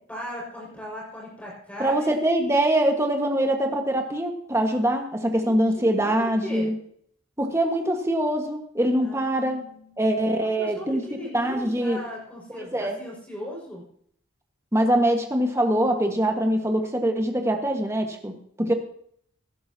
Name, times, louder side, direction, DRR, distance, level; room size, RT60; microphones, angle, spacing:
voice 1, 0.1-2.2 5.4-6.7 9.0-10.0 10.4-13.8, left 1 dB, 5° left, -3 dB, 5.7 m, -38 dB
voice 2, 1.8-6.8 7.4-9.6 10.0-11.0 11.3-12.0 12.7-13.0 14.7-18.7, right 1 dB, 15° right, 4 dB, 1.5 m, -23 dB
17.5 x 11.0 x 2.8 m, 0.63 s
head